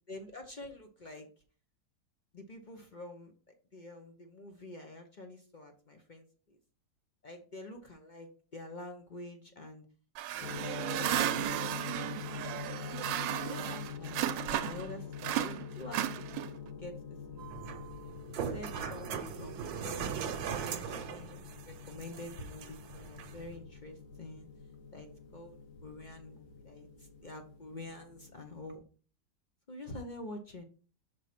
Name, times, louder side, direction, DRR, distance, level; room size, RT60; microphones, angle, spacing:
voice 1, 0.1-1.3 2.3-3.3 3.7-6.6 7.2-9.8 10.3-11.5 13.4-17.0 17.3-17.4 18.4-20.0 20.7-21.4 21.6-24.5 24.9-28.8 29.7-30.6, left 2 dB, 45° left, 5 dB, 0.6 m, -47 dB
sound 1, 10.2-14.9 15.2-16.7, right 13 dB, 85° right, 1.3 m, -34 dB
sound 2, 10.4-28.8, left 6 dB, 70° left, 1.8 m, -45 dB
sound 3, 17.4-23.4, right 7 dB, 65° right, 1.2 m, -40 dB
5.3 x 4.1 x 5.8 m, 0.39 s
omnidirectional pair, 1.9 m